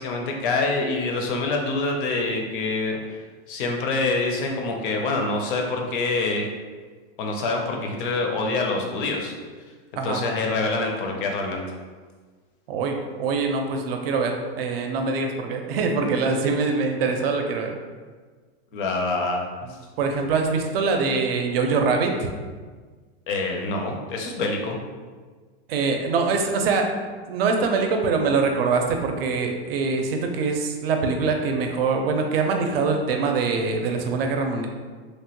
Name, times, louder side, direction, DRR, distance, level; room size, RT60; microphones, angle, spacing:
voice 1, 0.0-3.0 3.5-6.5 7.2-9.3 10.0-11.6 18.7-19.4 23.3-24.8, left 3 dB, 55° left, 2 dB, 0.6 m, -25 dB
voice 2, 12.7-17.8 19.6-22.3 25.7-26.9 27.3-34.7, right 4 dB, 70° right, 3 dB, 0.5 m, -24 dB
3.0 x 2.2 x 2.9 m, 1.5 s
supercardioid pair, 165°, 31 cm